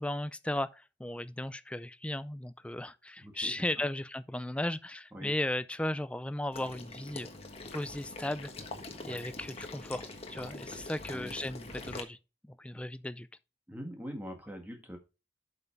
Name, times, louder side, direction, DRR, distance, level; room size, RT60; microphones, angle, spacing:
voice 1, 0.0-7.3 7.7-8.5 9.0-12.2 12.4-13.3, left 1 dB, 5° left, 0.4 m, -36 dB
voice 2, 3.2-3.8 5.1-5.3 11.1-11.4 13.7-15.0, equal, 10° right, 1.8 m, -43 dB
Water / Liquid, 6.5-12.0, left 2 dB, 30° left, 1.4 m, -44 dB
7.9 x 5.6 x 4.6 m
head